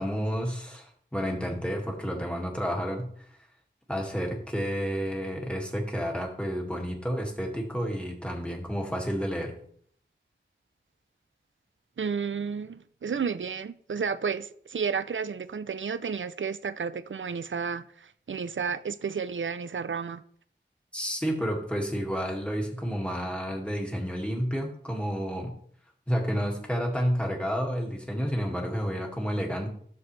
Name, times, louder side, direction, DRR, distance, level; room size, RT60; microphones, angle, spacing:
voice 1, 0.0-3.1 3.9-9.5 20.9-25.5 26.1-29.7, equal, 5° left, 2.1 m, -30 dB
voice 2, 12.0-20.2, right 6 dB, 90° right, 0.5 m, -32 dB
12.0 x 6.8 x 3.3 m
wide cardioid pair, 45°, 19 cm